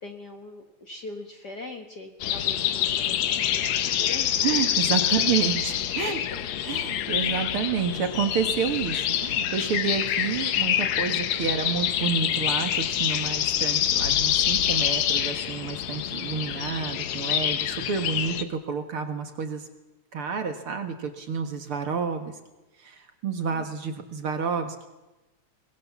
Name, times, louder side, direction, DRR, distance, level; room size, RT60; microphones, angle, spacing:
voice 1, 0.0-4.6 5.2-5.7 6.0-6.7 23.5-23.7, left 3 dB, 45° left, 5 dB, 1.7 m, -42 dB
sound 1, 2.2-18.4, left 10 dB, 70° left, 2.2 m, -26 dB
voice 2, 4.4-6.2 6.7-19.7 20.1-22.3 22.8-24.9, right 6 dB, 50° right, 6 dB, 2.3 m, -29 dB
24.0 x 20.0 x 7.2 m, 1.0 s
omnidirectional pair, 3.3 m